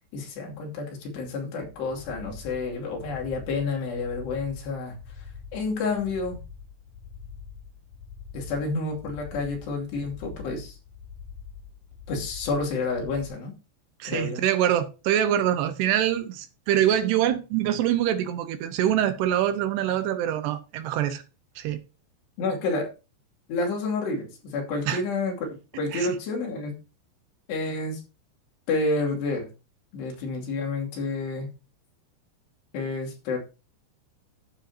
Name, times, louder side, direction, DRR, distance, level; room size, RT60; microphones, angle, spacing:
voice 1, 0.1-4.9 5.5-6.4 8.3-10.8 12.1-13.5 14.0-14.4 22.4-22.9 23.5-26.8 27.5-28.0 28.7-29.5 29.9-31.5 32.7-33.4, left 3 dB, 70° left, 4.7 m, -29 dB
sound 1, 1.6-13.3, left 6 dB, 85° left, 1.7 m, -44 dB
voice 2, 14.0-21.2 21.6-21.8 24.9-25.0 25.9-26.2, right 11 dB, 75° right, 2.7 m, -24 dB
12.0 x 8.9 x 2.8 m
omnidirectional pair, 5.1 m